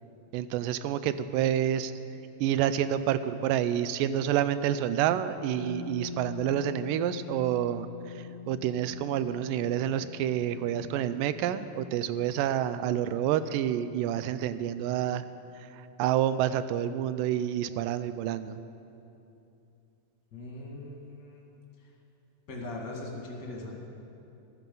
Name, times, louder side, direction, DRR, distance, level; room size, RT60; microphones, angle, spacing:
voice 1, 0.3-1.9 2.4-7.9 8.2-15.3 16.0-18.6, right 11 dB, 80° right, 13 dB, 2.1 m, -28 dB
sound 1, 5.4-15.2, left 6 dB, 15° left, 2.3 m, -44 dB
voice 2, 20.3-21.4 22.5-23.8, left 2 dB, 35° left, -1 dB, 2.0 m, -40 dB
14.5 x 13.5 x 5.4 m, 2.8 s
omnidirectional pair, 4.1 m